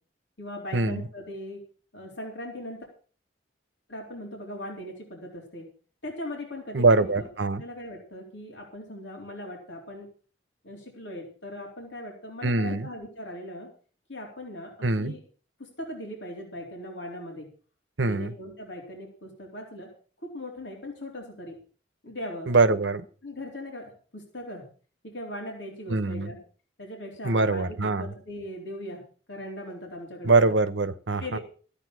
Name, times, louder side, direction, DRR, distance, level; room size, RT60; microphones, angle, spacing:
voice 1, 0.4-1.6 1.9-2.9 3.9-5.7 6.0-7.3 7.6-10.1 10.6-13.7 14.1-15.2 15.6-17.5 18.0-19.9 20.2-21.6 22.0-22.5 23.2-24.7 25.0-26.4 26.8-29.0 29.3-30.5 31.2-31.4, left 1 dB, 75° left, 3.9 m, -39 dB
voice 2, 6.7-7.6 12.4-12.9 14.8-15.1 18.0-18.3 22.5-23.1 25.9-26.3 27.2-28.1 30.2-31.4, right 3 dB, 80° right, 0.9 m, -23 dB
14.0 x 8.9 x 6.2 m
head